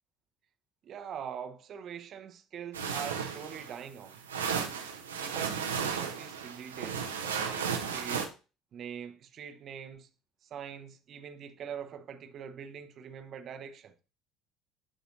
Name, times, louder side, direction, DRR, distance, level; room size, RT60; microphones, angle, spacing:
voice 1, 0.8-4.2 5.2-8.3 8.7-10.1 10.4-14.0, right 8 dB, 45° right, 0.8 m, -43 dB
sound 1, 2.7-8.3, right 6 dB, 80° right, 0.8 m, -34 dB
11.0 x 4.0 x 2.6 m
figure-of-eight pair, 60°, 0 cm